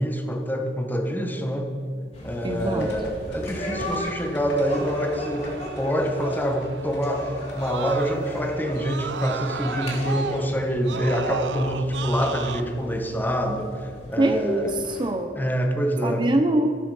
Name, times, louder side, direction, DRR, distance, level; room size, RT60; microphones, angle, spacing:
voice 1, 0.0-1.7 2.2-14.7 15.4-16.3, equal, 10° left, 4 dB, 1.5 m, -26 dB
sound 1, 2.1-15.1, equal, 40° left, 4.2 m, -37 dB
voice 2, 2.4-2.9 14.2-15.3 16.0-16.8, right 1 dB, 25° right, 7 dB, 0.7 m, -23 dB
sound 2, 2.8-7.8 8.1-8.2, left 1 dB, 80° left, 3.2 m, -42 dB
Screaming, 3.8-8.4 8.8-12.6, right 5 dB, 85° right, 0.7 m, -35 dB
14.0 x 13.5 x 5.5 m, 2.4 s
head